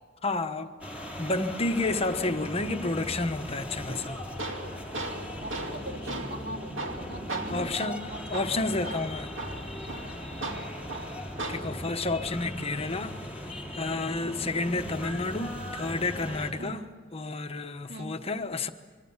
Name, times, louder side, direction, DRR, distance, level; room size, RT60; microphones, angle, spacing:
voice 1, 0.2-0.7 1.2-4.2 7.5-9.3 11.5-13.2 13.7-16.8 17.1-18.7, left 2 dB, 30° left, 1.1 m, -30 dB
sound 1, 0.8-16.5, left 1 dB, 5° right, 4.0 m, -39 dB
Tools, 3.9-11.9, right 2 dB, 70° right, 2.4 m, -38 dB
voice 2, 5.4-8.2 10.4-10.7 14.5-14.7 16.6-16.9 17.9-18.1, right 1 dB, 55° right, 2.7 m, -42 dB
26.5 x 23.5 x 7.3 m
head